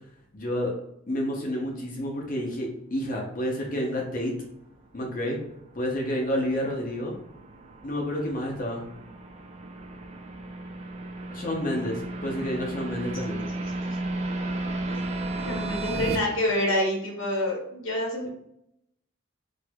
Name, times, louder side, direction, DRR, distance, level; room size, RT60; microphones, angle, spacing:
voice 1, 0.3-0.7 1.1-4.3 4.9-5.4 5.7-7.2 7.8-8.8 11.3-13.4, equal, 40° left, 0 dB, 0.6 m, -29 dB
sound 1, 4.7-16.2, right 2 dB, 30° right, 0.3 m, -34 dB
voice 2, 15.4-18.3, left 1 dB, 75° left, -1 dB, 1.0 m, -27 dB
4.3 x 2.5 x 2.2 m, 0.75 s
head